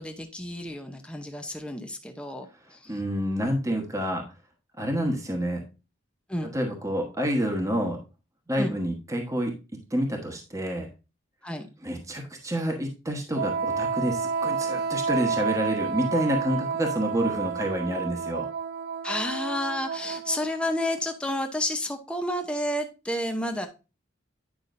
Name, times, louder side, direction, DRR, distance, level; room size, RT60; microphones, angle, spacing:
voice 1, 0.0-3.0 6.3-6.5 8.6-8.8 11.4-11.7 19.0-23.7, left 1 dB, 5° left, 0.7 m, -31 dB
voice 2, 2.9-4.2 4.8-5.6 6.5-8.0 8.5-9.5 9.9-10.9 11.8-18.5, equal, 15° right, 1.2 m, -28 dB
Wind instrument woodwind instrument, 13.3-20.7, right 5 dB, 50° right, 0.4 m, -30 dB
9.3 x 5.5 x 2.6 m
head